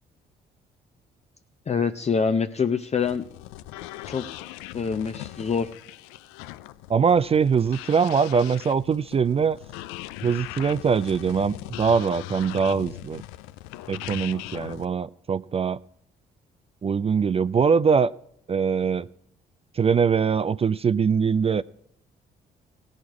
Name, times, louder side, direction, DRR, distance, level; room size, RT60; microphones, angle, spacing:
voice 1, 1.7-3.2 4.1-4.3 4.7-5.7, left 6 dB, 30° left, 7 dB, 0.6 m, -25 dB
sound 1, 3.0-14.9, left 16 dB, 80° left, 0.4 m, -40 dB
voice 2, 6.9-9.6 10.2-13.2 13.9-15.8 16.8-18.1 18.5-19.1 19.7-21.6, right 6 dB, 30° right, 17 dB, 0.4 m, -22 dB
17.0 x 6.5 x 4.7 m, 0.72 s
hypercardioid pair, 50°, 21 cm